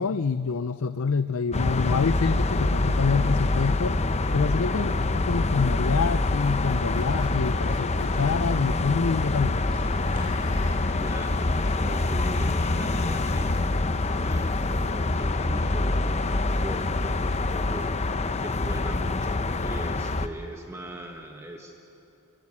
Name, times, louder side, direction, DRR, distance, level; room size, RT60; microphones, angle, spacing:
voice 1, 0.0-4.0 4.3-4.9 5.3-9.6, left 5 dB, 65° left, 12 dB, 0.5 m, -26 dB
sound 1, 1.5-20.3, left 2 dB, 30° left, 0.7 m, -25 dB
Screech, 6.4-8.4 10.0-10.8 11.5-13.7, left 3 dB, 90° left, 6.6 m, -47 dB
sound 2, 6.7-17.9, equal, 45° right, 6.3 m, -48 dB
voice 2, 10.9-11.4 11.7-13.6 13.9-18.0 18.4-21.8, right 1 dB, 15° right, 2 dB, 1.3 m, -40 dB
27.5 x 16.0 x 9.8 m, 2.8 s
head